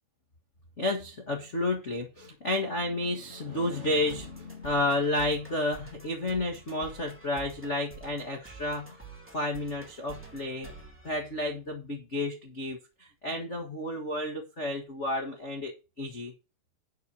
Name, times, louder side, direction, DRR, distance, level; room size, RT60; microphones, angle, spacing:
voice 1, 0.8-9.0 9.3-10.7 11.0-16.3, left 1 dB, 75° left, 2 dB, 0.6 m, -31 dB
sound 1, 3.3-11.9, right 3 dB, 5° right, 0.9 m, -50 dB
10.5 x 4.7 x 6.3 m, 0.30 s
omnidirectional pair, 4.3 m